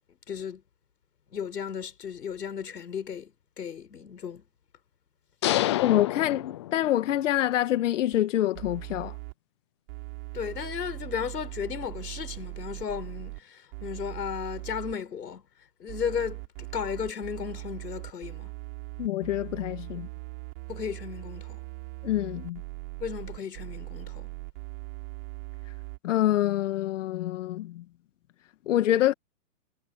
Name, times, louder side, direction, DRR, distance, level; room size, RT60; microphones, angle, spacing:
voice 1, 0.3-0.6 1.3-4.4 10.3-15.4 15.8-18.5 20.7-21.6 23.0-24.3, left 7 dB, 85° left, 7.3 m, -35 dB
sound 1, 5.4-7.2, left 14 dB, 20° left, 0.5 m, -28 dB
voice 2, 5.8-9.1 19.0-20.1 22.0-22.6 26.0-27.8 28.7-29.1, left 13 dB, 50° left, 2.2 m, -26 dB
sound 2, 8.1-8.2 8.5-9.3 9.9-13.4 13.7-14.9 15.9-26.0, right 28 dB, 35° right, 6.9 m, -40 dB
hypercardioid pair, 155°, 47 cm